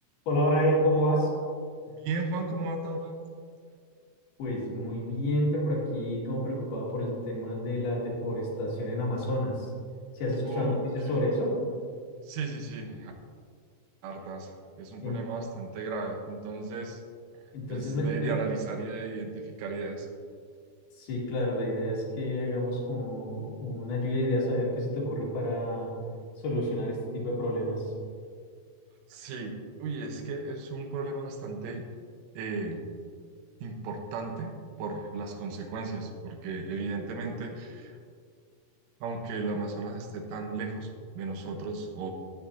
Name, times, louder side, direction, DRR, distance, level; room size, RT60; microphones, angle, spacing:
voice 1, 0.3-1.3 4.4-9.7 10.1-11.6 15.0-15.2 17.5-18.4 21.0-25.9 26.4-27.9, equal, 60° left, -5 dB, 3.7 m, -29 dB
voice 2, 1.9-3.2 10.5-10.8 11.0-11.3 12.2-13.1 14.0-17.0 17.7-20.1 29.1-31.9 32.4-32.8 33.6-38.0 39.0-42.1, right 3 dB, 90° right, 3 dB, 3.6 m, -35 dB
16.5 x 8.8 x 2.8 m, 2.1 s
omnidirectional pair, 5.6 m